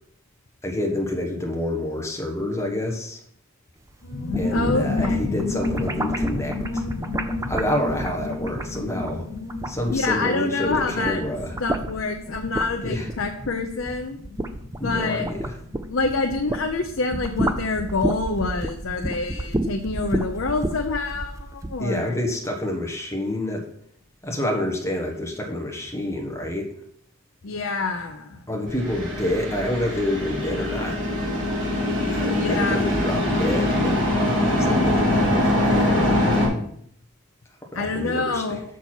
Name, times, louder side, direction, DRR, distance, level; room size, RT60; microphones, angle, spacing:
voice 1, 0.6-3.2 4.4-6.9 7.5-9.2 9.6-11.5 12.8-13.1 14.8-15.5 21.8-23.6 24.2-26.7 28.5-31.0 32.1-34.0 34.4-36.2 37.7-38.6, left 1 dB, 10° left, 0 dB, 1.3 m, -28 dB
sound 1, 4.0-20.3 20.6-20.7 20.9-21.3, left 2 dB, 85° left, 1.6 m, -32 dB
sound 2, 4.1-10.3 10.6-16.7 17.0-21.8, right 1 dB, 15° right, 0.4 m, -31 dB
voice 2, 4.5-5.4 9.9-11.2 11.6-14.2 14.8-15.3 15.9-22.2 27.4-28.4 32.4-32.8 37.7-38.6, left 3 dB, 60° left, 3 dB, 0.6 m, -27 dB
sound 3, 28.7-36.5, left 1 dB, 55° right, 3.7 m, -23 dB
6.9 x 6.2 x 4.4 m, 0.67 s
head